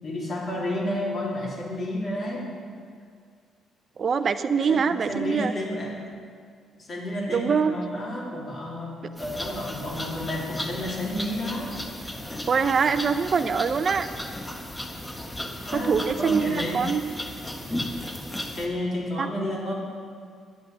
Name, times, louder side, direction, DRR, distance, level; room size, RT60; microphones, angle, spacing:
voice 1, 0.0-2.5 4.7-4.8 5.1-6.0 6.7-11.8 15.7-16.9 18.5-19.7, left 1 dB, 45° left, -4 dB, 3.4 m, -31 dB
voice 2, 4.0-5.5 7.3-7.7 12.5-14.1 15.7-17.0 19.2-19.3, right 6 dB, 45° right, 11 dB, 0.6 m, -24 dB
sound 1, 9.2-18.7, left 1 dB, 15° left, 1.1 m, -35 dB
10.5 x 8.3 x 6.3 m, 2.2 s
cardioid pair, 90°, 0 cm